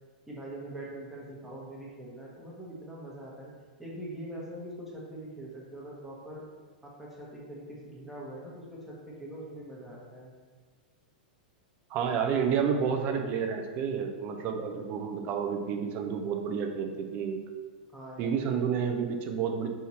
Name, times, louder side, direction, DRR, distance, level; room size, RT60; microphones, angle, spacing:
voice 1, 0.3-3.5 3.8-6.4 6.8-10.3 17.9-18.4, right 1 dB, 5° right, -5 dB, 1.1 m, -43 dB
voice 2, 11.9-17.4 18.2-19.7, right 7 dB, 40° right, 4 dB, 0.5 m, -30 dB
3.5 x 2.9 x 4.2 m, 1.5 s
hypercardioid pair, 115°, 5 cm